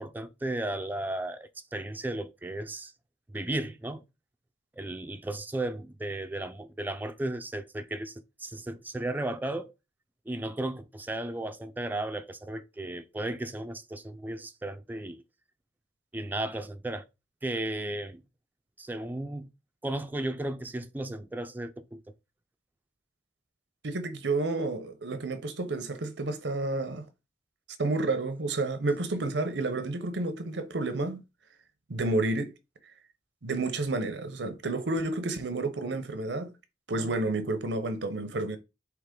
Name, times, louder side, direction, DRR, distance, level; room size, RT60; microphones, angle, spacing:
voice 1, 0.0-2.9 3.3-4.0 4.8-9.7 10.3-15.2 16.1-17.1 17.4-18.2 18.8-19.5 19.8-22.0, right 1 dB, 10° right, 0.4 m, -35 dB
voice 2, 23.8-27.0 27.8-31.2 31.9-32.5 33.4-36.5 36.9-38.6, right 2 dB, 85° right, 0.8 m, -30 dB
4.7 x 3.0 x 3.8 m
head